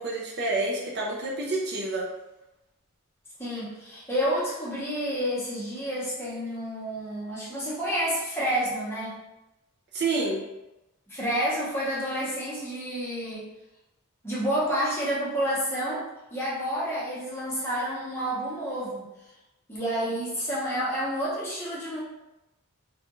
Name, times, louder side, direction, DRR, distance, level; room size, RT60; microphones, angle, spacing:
voice 1, 0.0-2.1 9.9-10.4, right 2 dB, 50° right, -2 dB, 0.4 m, -28 dB
voice 2, 3.4-9.2 11.1-13.5 14.2-16.0 16.3-19.1 19.7-22.0, equal, 10° left, -8 dB, 0.8 m, -29 dB
2.4 x 2.3 x 2.9 m, 0.97 s
head